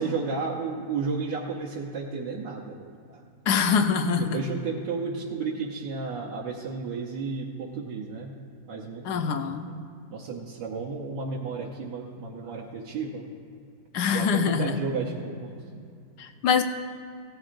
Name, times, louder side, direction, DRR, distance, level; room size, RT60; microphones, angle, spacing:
voice 1, 0.0-3.2 4.2-8.3 8.7-9.4 9.7-9.8 10.1-13.3 14.1-15.6, right 4 dB, 85° right, -2 dB, 1.5 m, -33 dB
voice 2, 3.5-4.4 9.0-9.7 13.9-14.7 16.2-16.6, left 6 dB, 75° left, 8 dB, 1.2 m, -24 dB
17.0 x 12.5 x 2.5 m, 2.4 s
omnidirectional pair, 1.8 m